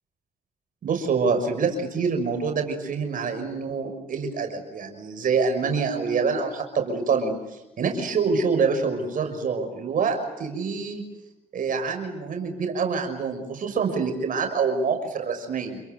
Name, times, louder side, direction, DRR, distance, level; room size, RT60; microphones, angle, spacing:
voice 1, 0.8-11.0 11.5-15.8, right 5 dB, 65° right, 5 dB, 6.2 m, -26 dB
29.5 x 23.0 x 8.1 m, 0.95 s
cardioid pair, 70°, 15 cm